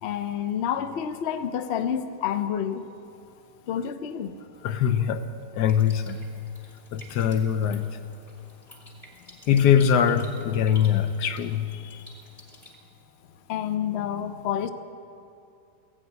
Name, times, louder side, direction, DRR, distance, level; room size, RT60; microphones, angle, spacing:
voice 1, 0.0-2.8 3.7-4.3 13.5-14.7, left 9 dB, 90° left, 10 dB, 0.5 m, -28 dB
voice 2, 4.6-5.3 5.5-6.3 6.9-8.0 9.5-12.0, left 8 dB, 70° left, 11 dB, 1.2 m, -22 dB
sound 1, 5.6-12.7, equal, 20° left, 2.0 m, -51 dB
16.0 x 10.5 x 8.1 m, 2.6 s
omnidirectional pair, 2.0 m